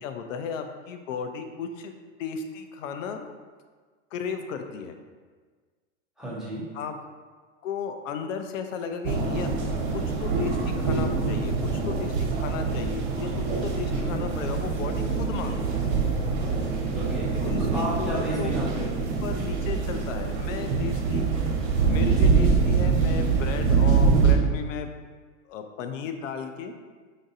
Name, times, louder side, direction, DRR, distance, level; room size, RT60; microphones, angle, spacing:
voice 1, 0.0-1.9 2.2-3.2 4.1-5.0 6.7-6.9 7.6-9.5 10.2-15.9 17.4-18.5 19.2-21.3 21.9-24.9 25.5-26.7, left 6 dB, 80° left, 7 dB, 0.5 m, -35 dB
voice 2, 6.2-6.6 13.9-14.2 16.9-17.3 17.7-18.9, right 1 dB, ahead, -8 dB, 0.6 m, -32 dB
sound 1, 9.0-24.3, right 4 dB, 55° right, 0.9 m, -24 dB
5.1 x 2.5 x 2.6 m, 1.5 s
supercardioid pair, 145°, 38 cm